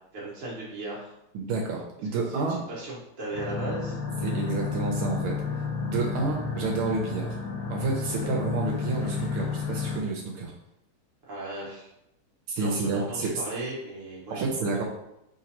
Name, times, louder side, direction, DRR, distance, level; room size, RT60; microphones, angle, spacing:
voice 1, 0.1-1.1 2.1-4.0 8.2-8.3 11.3-11.9 12.6-14.8, right 2 dB, 40° right, -6 dB, 1.5 m, -37 dB
voice 2, 1.3-2.6 4.2-5.4 5.8-7.4 7.7-10.5 12.5-13.3 14.4-14.8, right 3 dB, 80° right, -1 dB, 1.5 m, -29 dB
sound 1, 3.3-10.0, left 5 dB, 85° left, 1.5 m, -31 dB
5.0 x 3.2 x 2.9 m, 0.84 s
omnidirectional pair, 2.3 m